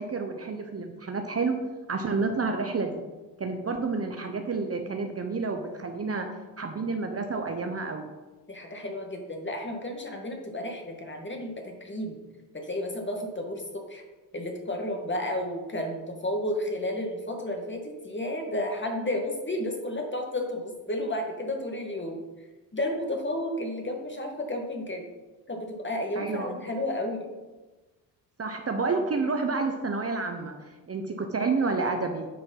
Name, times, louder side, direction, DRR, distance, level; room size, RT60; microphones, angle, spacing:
voice 1, 0.0-1.6 1.9-3.0 3.4-6.3 6.6-8.1 26.1-26.6 28.4-32.3, right 4 dB, 30° right, 4 dB, 1.1 m, -29 dB
voice 2, 8.5-12.2 12.5-14.0 14.3-22.2 22.7-25.0 25.5-27.3, left 1 dB, 20° left, 2 dB, 2.3 m, -32 dB
9.4 x 5.3 x 5.7 m, 1.2 s
hypercardioid pair, 60°, 49 cm